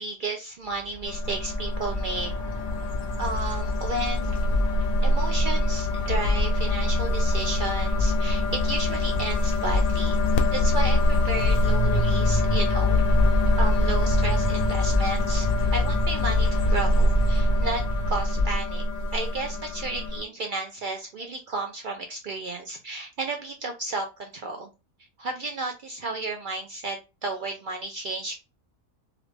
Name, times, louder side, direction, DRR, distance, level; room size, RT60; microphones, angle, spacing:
voice 1, 0.0-2.3 3.2-4.4 5.0-10.2 10.5-13.0 13.6-15.5 15.7-18.8 19.1-24.7 25.2-27.0 27.2-28.4, right 3 dB, 80° right, 3 dB, 0.4 m, -33 dB
sound 1, 0.9-18.5, left 2 dB, 35° left, 0.4 m, -28 dB
sound 2, 1.0-20.2, left 1 dB, 90° left, 1.0 m, -25 dB
sound 3, 3.4-18.6, left 3 dB, 40° right, 1.0 m, -32 dB
3.2 x 2.5 x 3.2 m, 0.28 s
omnidirectional pair, 1.5 m